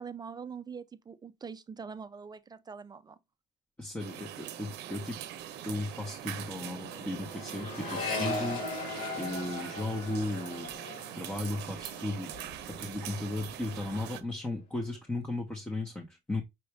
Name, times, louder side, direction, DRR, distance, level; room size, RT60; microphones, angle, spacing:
voice 1, 0.0-3.2, right 6 dB, 25° right, 0.4 m, -43 dB
voice 2, 3.8-5.2 5.6-10.7 11.1-16.4, left 2 dB, 10° left, 0.9 m, -36 dB
sound 1, 4.0-14.2, right 12 dB, 80° right, 0.6 m, -43 dB
Accelerating revving vroom, 5.0-5.2 5.4-13.0 13.3-13.9, left 2 dB, 50° left, 2.0 m, -39 dB
5.8 x 2.5 x 3.2 m
cardioid pair, 110°, 17 cm